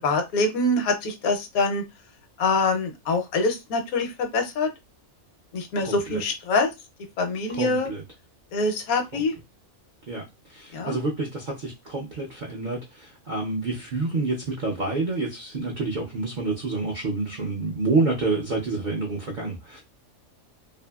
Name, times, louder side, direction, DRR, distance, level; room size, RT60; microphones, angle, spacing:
voice 1, 0.0-1.8 2.4-4.7 5.5-6.7 7.2-7.9 8.5-9.3 10.7-11.0, left 3 dB, 80° left, 1.1 m, -24 dB
voice 2, 5.8-6.2 7.5-8.0 9.1-9.2 10.1-19.8, right 3 dB, 65° right, 0.4 m, -28 dB
2.6 x 2.6 x 2.2 m
omnidirectional pair, 1.5 m